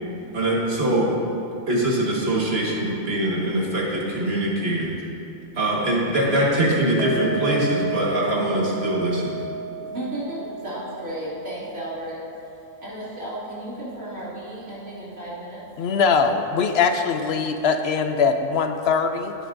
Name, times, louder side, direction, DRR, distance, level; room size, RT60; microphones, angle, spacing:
voice 1, 0.3-1.2 1.7-4.9 5.5-9.4, right 1 dB, 50° right, -4 dB, 1.8 m, -23 dB
sound 1, 7.0-14.2 14.5-14.6 15.0-15.1, right 4 dB, 15° right, 0.9 m, -34 dB
voice 2, 9.8-12.2 12.8-15.6 17.9-18.0, right 1 dB, 80° right, -9 dB, 3.1 m, -34 dB
voice 3, 15.8-19.3, left 5 dB, 60° left, 7 dB, 0.8 m, -21 dB
16.5 x 8.0 x 2.6 m, 2.8 s
omnidirectional pair, 1.4 m